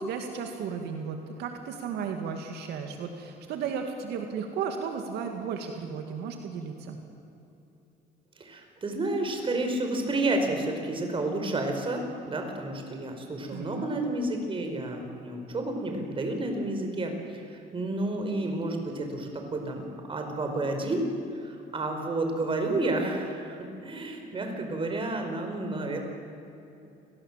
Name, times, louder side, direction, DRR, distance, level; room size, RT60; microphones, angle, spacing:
voice 1, 0.0-7.0 13.5-13.9, right 6 dB, 80° right, 4 dB, 2.3 m, -34 dB
voice 2, 8.4-19.8 20.1-21.1 21.4-26.0, right 2 dB, 30° right, 4 dB, 4.8 m, -30 dB
29.0 x 19.0 x 7.6 m, 2.8 s
cardioid pair, 110°, 17 cm